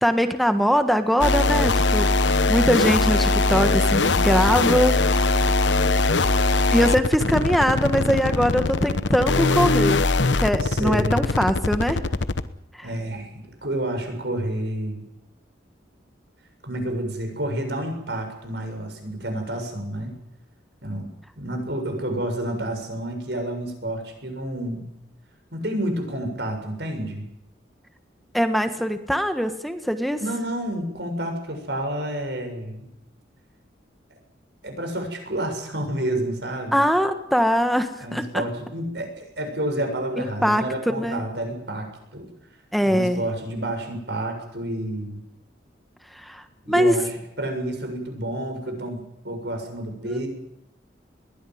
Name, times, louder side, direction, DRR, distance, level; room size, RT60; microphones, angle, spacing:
voice 1, 0.0-2.1 2.5-4.9 6.7-10.0 10.3-12.1 12.7-12.9 28.3-30.2 36.7-38.4 40.2-40.6 41.0-41.2 42.7-43.2 46.1-46.9 50.0-50.2, equal, ahead, 8 dB, 1.4 m, -22 dB
sound 1, 1.2-12.5, left 3 dB, 80° left, 1.1 m, -21 dB
voice 2, 10.6-11.4 12.8-15.0 16.6-20.1 20.8-21.1 21.4-24.9 25.5-27.3 30.2-32.9 34.6-36.9 38.0-41.9 42.1-42.3 42.8-45.2 46.6-50.3, right 1 dB, 65° right, 4 dB, 7.1 m, -29 dB
21.5 x 16.5 x 9.5 m, 0.81 s
head